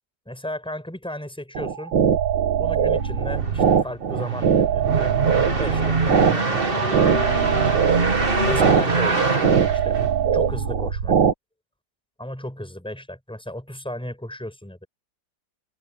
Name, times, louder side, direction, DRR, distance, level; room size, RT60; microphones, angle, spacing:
voice 1, 0.3-1.9 2.6-5.2 5.6-7.0 8.4-9.2 9.7-10.0 10.3-11.2 12.2-14.9, left 1 dB, 5° left, 5.9 m, -34 dB
sound 1, 1.5-11.3, right 7 dB, 75° right, 2.2 m, -21 dB
sound 2, 3.0-10.6, right 3 dB, 30° right, 2.3 m, -24 dB
omnidirectional pair, 2.0 m